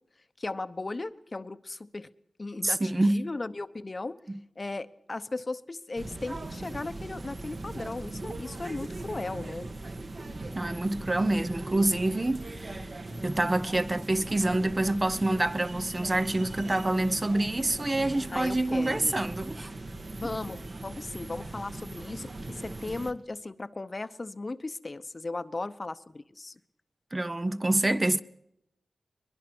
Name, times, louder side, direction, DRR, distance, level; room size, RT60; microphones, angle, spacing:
voice 1, 0.4-2.1 2.4-4.2 4.6-9.7 18.3-19.1 20.1-26.6, left 2 dB, 35° left, 0.9 m, -37 dB
voice 2, 2.6-3.3 10.5-12.9 13.2-19.7 27.1-28.2, right 2 dB, 25° right, 0.7 m, -27 dB
sound 1, 5.9-23.1, right 2 dB, 50° right, 1.8 m, -40 dB
22.0 x 21.5 x 6.1 m
wide cardioid pair, 90°, 0 cm